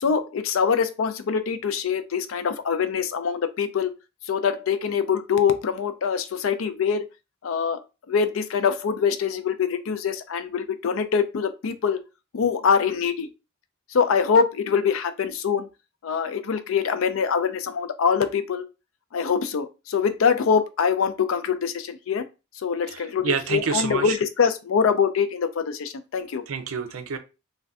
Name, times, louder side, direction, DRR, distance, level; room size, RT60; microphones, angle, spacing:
voice 1, 0.0-3.9 4.3-7.0 7.4-7.8 8.1-12.0 12.3-13.3 13.9-15.7 16.0-18.6 19.1-22.2 22.6-26.4, left 6 dB, 75° left, 0.4 m, -24 dB
voice 2, 22.9-24.2 26.5-27.2, right 5 dB, 90° right, 0.5 m, -28 dB
2.5 x 2.2 x 3.4 m
head